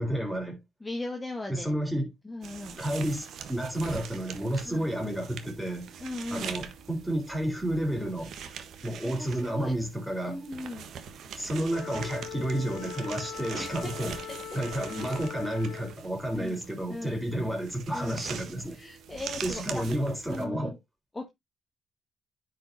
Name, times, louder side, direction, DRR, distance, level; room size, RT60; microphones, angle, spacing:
voice 1, 0.0-0.6 1.5-2.1 2.8-5.9 6.3-8.3 8.8-10.4 11.4-14.2 14.5-18.8 19.4-20.8, right 1 dB, 5° right, 3.9 m, -31 dB
voice 2, 0.8-1.7 2.2-2.8 4.6-4.9 6.0-6.5 9.0-9.8 10.3-10.9 13.6-13.9 14.2-14.6 16.3-16.6 16.9-17.2 17.9-18.2 18.7-19.8 20.3-20.8 21.1-21.3, left 2 dB, 20° left, 1.4 m, -38 dB
sound 1, 2.4-20.4, right 7 dB, 70° right, 1.3 m, -43 dB
Wind instrument woodwind instrument, 11.7-16.1, left 10 dB, 80° left, 2.0 m, -41 dB
10.0 x 5.4 x 2.7 m
cardioid pair, 90°, 0 cm